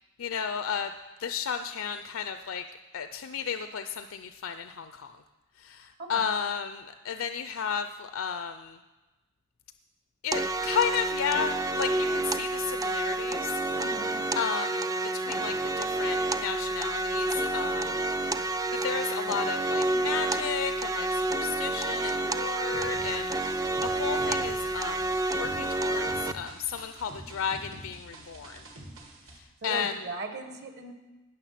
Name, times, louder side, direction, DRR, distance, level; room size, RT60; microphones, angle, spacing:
voice 1, 0.2-0.9 1.2-2.6 2.9-5.2 5.6-8.8 10.2-13.6 14.4-14.9 15.1-18.5 18.8-25.1 25.4-28.6 29.4-29.9, left 7 dB, 70° left, 9 dB, 0.5 m, -33 dB
voice 2, 6.0-6.3 13.7-14.2 29.6-30.9, right 3 dB, 50° right, 6 dB, 1.4 m, -38 dB
sound 1, 10.3-26.3, right 2 dB, 15° right, 0.3 m, -29 dB
sound 2, 22.7-29.4, right 1 dB, 65° right, 2.1 m, -46 dB
18.5 x 6.7 x 5.8 m, 1.1 s
head